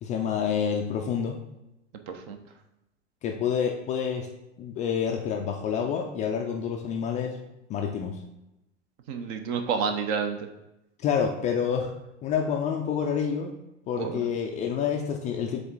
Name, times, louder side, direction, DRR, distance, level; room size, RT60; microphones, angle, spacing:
voice 1, 0.0-1.4 3.2-4.3 4.6-7.4 7.7-8.2 11.0-11.9 12.2-13.5 13.9-15.6, left 7 dB, 20° left, 2 dB, 0.4 m, -28 dB
voice 2, 2.1-2.4 9.1-10.5 14.0-14.3, right 6 dB, 40° right, 6 dB, 0.8 m, -29 dB
7.0 x 3.6 x 3.9 m, 0.91 s
figure-of-eight pair, 95°, 36 cm